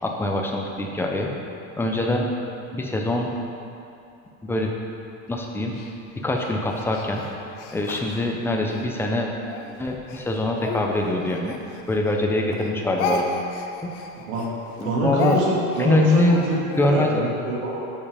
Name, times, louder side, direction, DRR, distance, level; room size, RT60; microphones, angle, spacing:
voice 1, 0.0-1.3 1.8-2.3 2.7-3.3 4.4-4.7 5.3-5.7 6.2-7.2 7.7-9.3 9.8-11.5 11.9-13.3 14.8-15.4 15.8-16.4 16.8-17.2, left 2 dB, 5° left, 0 dB, 0.5 m, -23 dB
Speech, 5.7-8.9 9.4-12.2 12.5-16.9, left 4 dB, 60° left, 1.0 m, -33 dB
voice 2, 14.8-16.6 16.9-17.8, right 2 dB, 90° right, -4 dB, 2.1 m, -25 dB
7.5 x 7.3 x 4.9 m, 2.7 s
supercardioid pair, 150°, 41 cm